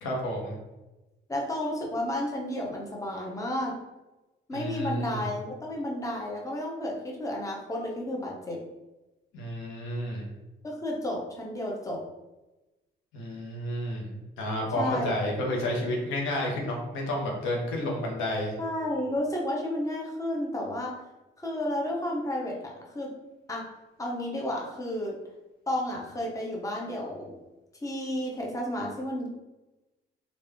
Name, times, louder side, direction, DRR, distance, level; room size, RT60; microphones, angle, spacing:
voice 1, 0.0-0.6 4.5-5.3 9.3-10.3 13.1-18.5, left 1 dB, 90° left, -1 dB, 1.0 m, -31 dB
voice 2, 1.3-3.8 4.5-8.6 10.6-12.0 14.7-15.1 18.6-20.9 21.4-23.1 23.5-23.6 24.0-25.2 25.7-27.3 27.8-29.3, left 1 dB, 15° left, -2 dB, 0.8 m, -32 dB
3.4 x 2.5 x 3.4 m, 1.1 s
cardioid pair, 90°, 20 cm